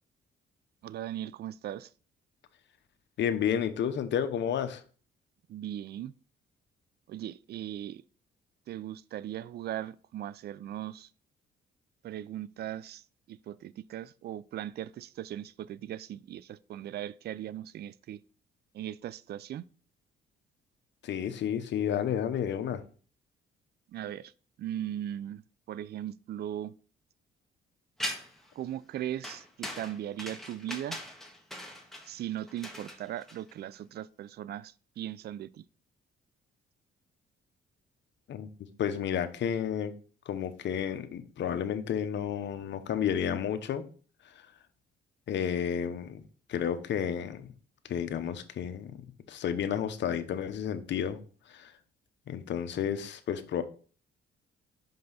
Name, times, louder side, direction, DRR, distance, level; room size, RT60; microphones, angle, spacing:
voice 1, 0.8-1.9 5.5-6.1 7.1-8.0 8.7-11.1 12.0-13.0 13.3-18.2 18.7-19.7 23.9-24.3 24.6-25.4 25.7-26.7 28.6-31.0 32.0-35.6, right 12 dB, 55° right, 0.4 m, -38 dB
voice 2, 3.2-4.8 21.0-22.8 38.3-38.5 38.8-40.0 40.3-43.8 45.3-46.2 46.5-47.5 47.9-49.0 49.3-51.2 51.5-51.7 52.3-53.6, left 8 dB, 65° left, 0.9 m, -31 dB
sound 1, 28.0-28.5 29.2-33.7, equal, ahead, 1.5 m, -40 dB
5.6 x 5.4 x 4.0 m
cardioid pair, 90°, 20 cm